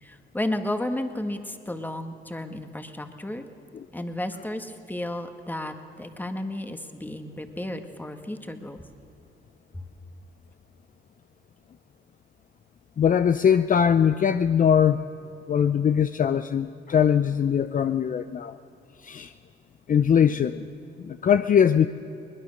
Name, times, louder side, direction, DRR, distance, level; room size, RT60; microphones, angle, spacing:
voice 1, 0.0-3.5 3.9-8.8 9.7-9.8, left 1 dB, 10° left, 7 dB, 1.7 m, -33 dB
voice 2, 13.0-15.0 15.5-18.6 19.0-19.3 19.9-20.6 21.0-21.9, left 8 dB, 40° left, 11 dB, 0.6 m, -21 dB
22.0 x 20.0 x 6.6 m, 2.8 s
cardioid pair, 90°, 20 cm